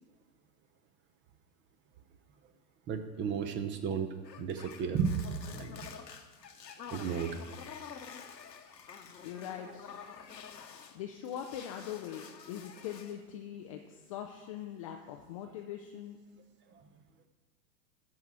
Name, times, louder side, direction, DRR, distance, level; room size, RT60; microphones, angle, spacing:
voice 1, 2.9-5.9 6.9-7.4, right 6 dB, 25° right, 9 dB, 0.8 m, -34 dB
sound 1, 4.2-11.0 11.3-13.2, left 7 dB, 85° left, 1.1 m, -48 dB
voice 2, 9.2-10.1 10.9-16.2, left 10 dB, 25° left, 3 dB, 0.4 m, -42 dB
13.0 x 4.8 x 7.1 m, 1.4 s
hypercardioid pair, 105°, 49 cm